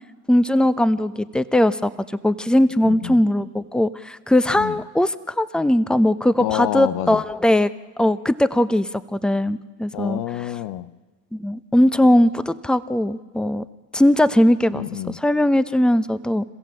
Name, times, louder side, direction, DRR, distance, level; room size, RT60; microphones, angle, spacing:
voice 1, 0.3-1.9 2.2-7.7 8.0-10.2 11.3-13.6 13.9-14.8 15.2-16.4, left 1 dB, ahead, 0.8 m, -19 dB
voice 2, 2.8-3.2 4.6-4.7 6.4-7.2 9.9-10.9 14.7-15.2, left 14 dB, 85° left, 0.8 m, -28 dB
27.5 x 15.5 x 7.6 m
supercardioid pair, 75°, 36 cm